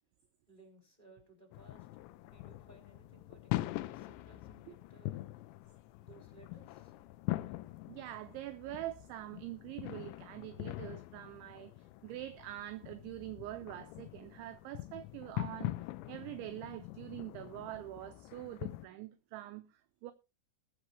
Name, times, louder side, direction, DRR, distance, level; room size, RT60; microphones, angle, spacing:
voice 1, 0.5-5.3 6.0-6.9, right 2 dB, 10° left, 5.3 m, -61 dB
sound 1, 1.5-18.9, left 18 dB, 85° left, 2.6 m, -43 dB
voice 2, 7.9-15.8 16.1-20.1, right 15 dB, 80° right, 2.8 m, -45 dB
21.5 x 7.3 x 3.2 m
omnidirectional pair, 5.9 m